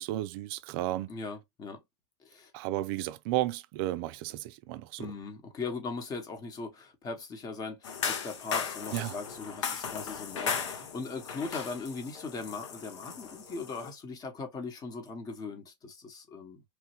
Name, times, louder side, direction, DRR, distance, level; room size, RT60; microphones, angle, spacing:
voice 1, 0.0-1.1 2.5-5.1 8.9-9.2, right 15 dB, 50° right, 0.4 m, -33 dB
voice 2, 1.1-1.8 2.2-2.5 5.0-16.6, left 4 dB, 25° left, 1.0 m, -39 dB
sound 1, 7.8-13.9, left 6 dB, 75° left, 0.9 m, -36 dB
3.1 x 2.2 x 3.0 m
hypercardioid pair, 125°, 15 cm